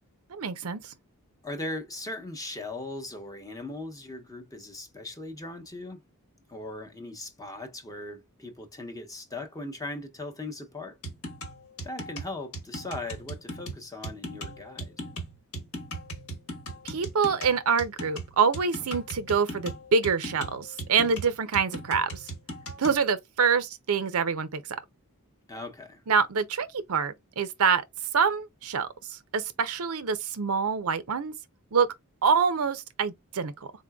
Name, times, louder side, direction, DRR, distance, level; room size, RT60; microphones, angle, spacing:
voice 1, 0.3-0.9 16.8-22.2 22.8-24.6 26.1-27.8 28.1-31.3 31.7-31.9 32.2-33.7, right 6 dB, 75° right, 0.6 m, -26 dB
voice 2, 1.4-6.0 6.5-11.0 11.8-14.9 25.5-26.0, left 2 dB, 15° left, 0.8 m, -39 dB
sound 1, 11.0-23.0, right 1 dB, 70° left, 1.3 m, -38 dB
3.9 x 3.8 x 2.3 m
head